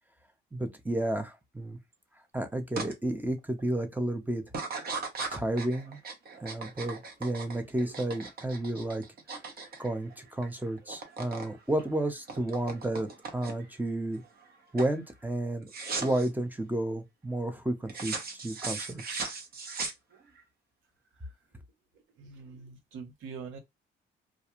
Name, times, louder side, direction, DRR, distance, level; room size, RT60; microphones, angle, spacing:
voice 1, 0.5-1.8 2.3-4.4 5.3-6.0 6.4-9.0 9.8-14.2 14.7-15.7 16.0-18.1 18.4-19.2, right 1 dB, 10° right, 0.6 m, -32 dB
sound 1, 2.8-2.9 3.4-3.8 4.5-10.5 10.8-11.5 11.8-13.8 14.2-14.5 14.8-15.0 15.7-16.3 17.9-20.4, right 4 dB, 50° right, 0.9 m, -38 dB
voice 2, 22.2-23.6, right 5 dB, 85° right, 0.9 m, -43 dB
2.4 x 2.3 x 2.9 m
cardioid pair, 90°, 20 cm